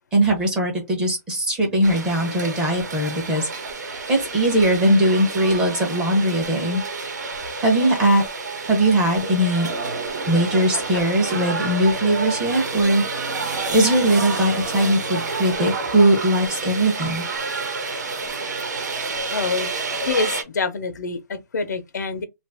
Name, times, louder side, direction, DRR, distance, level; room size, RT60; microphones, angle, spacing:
voice 1, 0.1-3.5 3.9-6.8 7.6-8.2 8.6-9.7 10.3-13.0 13.4-17.2, right 1 dB, 10° right, 0.7 m, -20 dB
sound 1, 1.8-20.4, right 3 dB, 85° right, 1.1 m, -29 dB
voice 2, 19.3-19.7 20.1-22.2, left 4 dB, 85° left, 0.7 m, -26 dB
2.8 x 2.5 x 3.3 m
hypercardioid pair, 170°, 9 cm